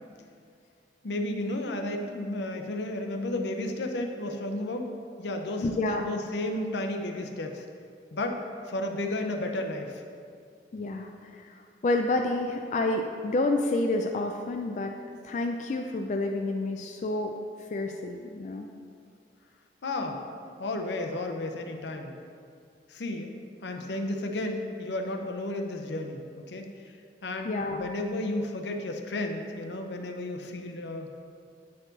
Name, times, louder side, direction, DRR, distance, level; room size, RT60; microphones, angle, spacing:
voice 1, 1.0-4.9 5.2-7.6 8.1-8.4 8.7-10.0 19.8-22.1 22.9-23.3 23.6-26.6 27.2-31.2, left 1 dB, 80° left, 4 dB, 0.7 m, -33 dB
voice 2, 5.6-6.0 10.7-14.9 15.2-17.3 17.7-18.7 27.4-27.9, left 2 dB, 45° left, 3 dB, 0.3 m, -29 dB
8.5 x 4.5 x 3.9 m, 2.2 s
head